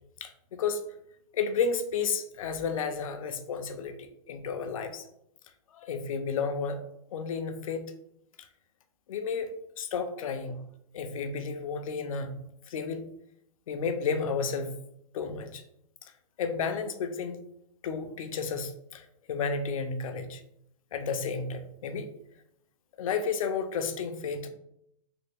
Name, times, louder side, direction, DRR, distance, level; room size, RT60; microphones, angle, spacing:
voice 1, 0.2-0.8 1.3-5.0 5.7-6.8 7.1-7.9 9.1-9.5 9.8-10.6 10.9-12.4 12.7-13.0 13.7-14.8 15.1-15.6 16.4-17.4 17.8-20.4 20.9-22.1 23.0-24.5, left 5 dB, 70° left, 7 dB, 0.6 m, -32 dB
3.4 x 2.5 x 3.3 m, 0.76 s
supercardioid pair, 175°, 18 cm